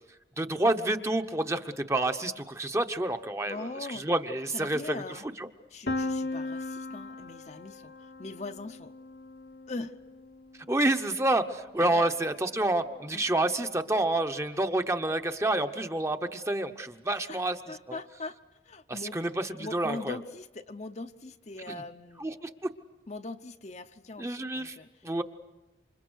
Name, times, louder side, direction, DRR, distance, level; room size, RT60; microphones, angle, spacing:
voice 1, 0.4-3.6 3.9-5.0 5.4-5.5 10.7-18.0 18.9-20.2 21.7-21.8 22.2-22.5 24.2-24.7 25.0-25.2, right 2 dB, 15° right, 7 dB, 0.9 m, -28 dB
voice 2, 3.5-4.1 4.5-5.3 5.7-8.9 9.7-10.0 11.9-12.1 13.1-13.2 17.3-17.4 17.7-18.4 18.6-22.3 23.1-25.2, left 3 dB, 40° left, 7 dB, 0.8 m, -41 dB
Piano, 5.9-11.6, left 2 dB, 65° left, 1.1 m, -38 dB
28.0 x 26.0 x 6.3 m, 1.1 s
head